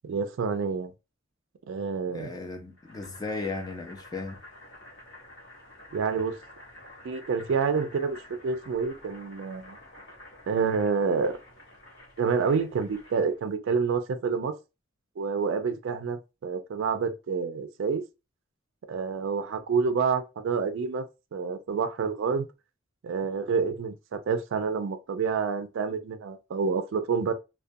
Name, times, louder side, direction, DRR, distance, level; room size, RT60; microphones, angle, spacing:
voice 1, 0.0-0.9 1.7-2.4 5.9-6.4 7.0-8.2 8.4-9.8 10.5-11.4 12.2-14.5 15.2-18.0 18.9-21.1 21.3-22.5 23.0-27.3, right 5 dB, 65° right, 0.4 m, -28 dB
voice 2, 2.1-4.4, left 3 dB, 20° left, 0.4 m, -36 dB
Boiling, 2.8-13.4, left 1 dB, 60° left, 1.1 m, -50 dB
2.3 x 2.2 x 2.5 m
head